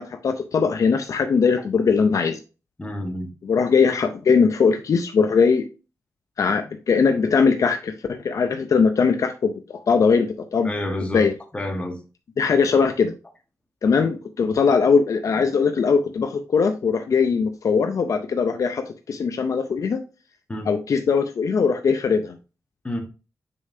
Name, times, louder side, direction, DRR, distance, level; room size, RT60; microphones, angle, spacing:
voice 1, 0.0-2.4 3.4-5.7 6.4-10.7 11.1-11.3 12.4-13.1 13.8-20.0 20.7-22.4, left 5 dB, 65° left, 0.6 m, -20 dB
voice 2, 2.8-3.3 10.6-11.3 11.5-12.0 20.5-20.7 22.8-23.0, left 1 dB, 20° left, 1.4 m, -29 dB
6.6 x 5.5 x 2.7 m
wide cardioid pair, 140°, 6 cm